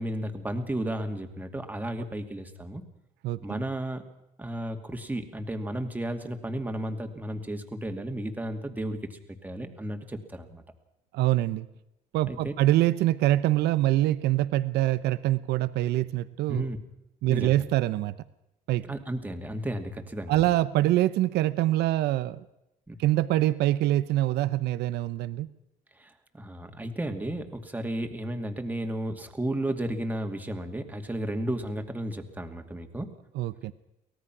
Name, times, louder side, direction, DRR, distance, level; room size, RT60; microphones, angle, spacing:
voice 1, 0.0-2.8 3.4-4.0 4.4-10.6 12.3-12.5 16.5-16.8 17.3-17.6 18.8-20.4 22.9-23.0 26.0-33.1, right 1 dB, 10° right, 5 dB, 2.4 m, -33 dB
voice 2, 3.2-3.6 11.1-11.7 12.1-16.7 17.2-18.1 18.7-18.8 20.3-22.4 23.0-25.5 33.4-33.7, right 15 dB, 80° right, 15 dB, 0.8 m, -25 dB
23.5 x 18.0 x 6.1 m, 0.87 s
cardioid pair, 110°, 17 cm